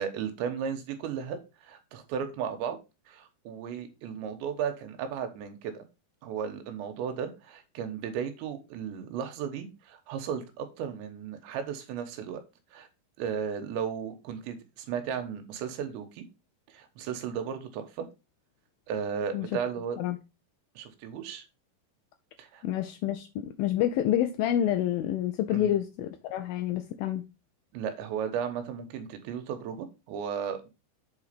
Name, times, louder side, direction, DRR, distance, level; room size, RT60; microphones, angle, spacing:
voice 1, 0.0-2.8 3.1-5.7 6.2-12.4 12.7-12.9 13.2-16.3 16.7-18.1 18.9-20.0 20.8-21.4 22.4-22.6 25.5-25.8 27.7-30.7, right 7 dB, 90° right, 3.5 m, -35 dB
voice 2, 22.6-27.2, left 11 dB, 85° left, 2.1 m, -28 dB
8.1 x 4.2 x 5.1 m
omnidirectional pair, 5.0 m